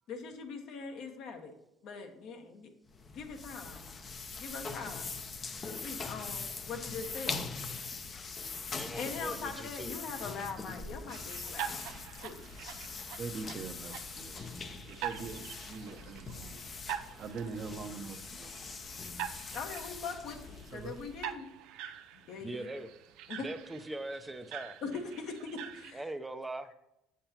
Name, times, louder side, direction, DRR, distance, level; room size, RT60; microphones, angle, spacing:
voice 1, 0.1-1.5 1.8-2.7 3.1-3.8 4.4-5.1 5.6-7.4 9.0-11.9 12.2-12.5 19.5-21.5 22.1-22.7 23.3-23.5 24.8-26.0, left 5 dB, 65° left, 1.3 m, -42 dB
sound 1, 2.9-21.4, left 4 dB, 35° left, 0.7 m, -42 dB
voice 2, 8.7-10.0 22.4-22.9 23.4-24.8 25.9-26.7, right 2 dB, 15° right, 0.6 m, -41 dB
sound 2, 11.1-25.9, right 10 dB, 70° right, 0.5 m, -45 dB
voice 3, 13.2-14.5 14.9-16.6 17.1-18.5 20.7-20.9, right 4 dB, 45° right, 0.8 m, -43 dB
7.7 x 7.3 x 2.9 m
hypercardioid pair, 70°, 0 cm